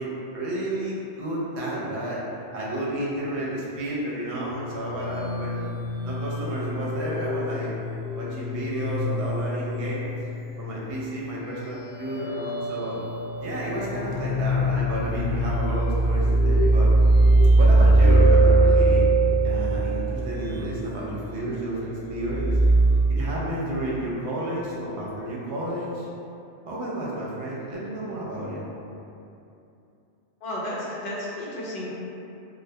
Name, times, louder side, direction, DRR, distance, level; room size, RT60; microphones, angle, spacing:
voice 1, 0.0-2.2 2.5-5.7 6.0-7.7 8.1-10.2 10.6-13.0 13.4-16.9 17.5-19.1 19.4-22.6 23.1-26.1 26.6-28.6, right 1 dB, 75° right, -6 dB, 0.9 m, -31 dB
sound 1, 4.4-23.0, right 2 dB, 5° left, 0.5 m, -22 dB
voice 2, 30.4-31.9, left 1 dB, 55° left, -6 dB, 0.6 m, -32 dB
2.2 x 2.1 x 2.7 m, 2.7 s
omnidirectional pair, 1.2 m